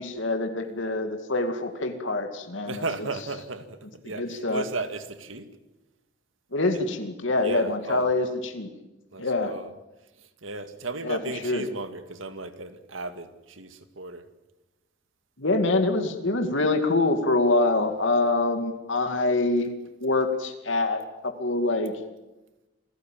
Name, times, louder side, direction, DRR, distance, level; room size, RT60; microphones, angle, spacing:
voice 1, 0.0-2.8 4.2-4.6 6.5-8.7 9.2-9.6 11.0-11.7 15.4-19.7 20.0-21.9, left 2 dB, 80° left, 6 dB, 2.3 m, -25 dB
voice 2, 2.6-5.5 7.4-8.1 9.1-9.7 10.2-14.2, right 3 dB, 85° right, 9 dB, 2.2 m, -35 dB
28.0 x 16.5 x 9.2 m, 1.0 s
head